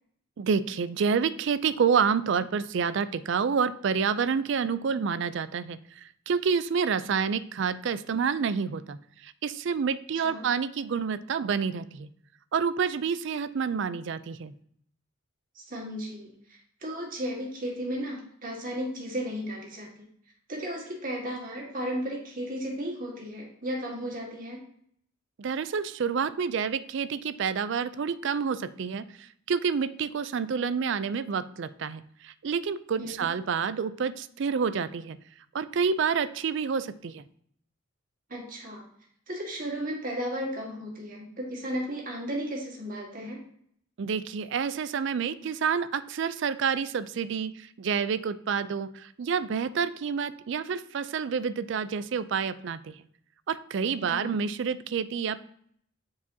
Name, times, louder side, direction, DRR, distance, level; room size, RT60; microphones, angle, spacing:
voice 1, 0.4-12.1 12.5-14.5 25.4-35.2 35.5-37.2 44.0-52.9 53.5-55.4, right 6 dB, 60° right, 14 dB, 0.4 m, -28 dB
voice 2, 10.1-10.5 15.6-20.1 20.5-24.6 33.0-33.2 38.3-38.8 39.3-43.4 54.0-54.3, equal, 40° right, -1 dB, 1.8 m, -35 dB
9.3 x 4.8 x 2.8 m, 0.66 s
head